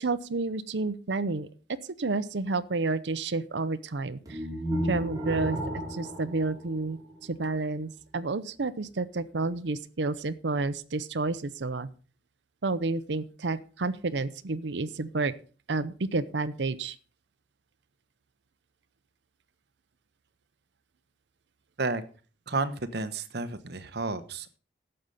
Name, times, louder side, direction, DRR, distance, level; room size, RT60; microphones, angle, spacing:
voice 1, 0.0-4.4 4.8-5.6 5.9-11.9 12.6-15.3 15.7-17.0, right 3 dB, 80° right, 14 dB, 0.7 m, -30 dB
sound 1, 4.3-7.4, equal, 20° right, 4.7 m, -34 dB
voice 2, 22.5-24.6, right 3 dB, 65° right, 13 dB, 1.1 m, -31 dB
12.0 x 7.9 x 5.6 m, 0.39 s
head